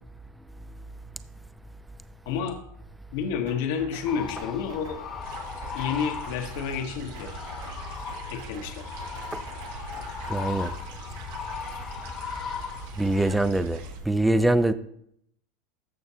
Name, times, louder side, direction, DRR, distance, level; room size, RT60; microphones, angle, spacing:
voice 1, 2.3-2.6 3.1-5.0 5.7-7.3 8.3-8.9, left 7 dB, 65° left, 1.0 m, -30 dB
sound 1, 3.5-4.1 4.4-5.0 5.3-5.9 6.2-6.9 7.1-7.8 8.1-8.7 9.0-10.5, right 5 dB, 90° right, 1.6 m, -47 dB
sound 2, 4.0-13.5, left 7 dB, 35° left, 0.9 m, -38 dB
sound 3, 5.2-14.0, right 4 dB, 75° right, 1.4 m, -42 dB
voice 2, 10.3-10.7 13.0-14.7, right 1 dB, 5° right, 0.4 m, -23 dB
14.0 x 5.7 x 2.8 m
supercardioid pair, 130°, 0 cm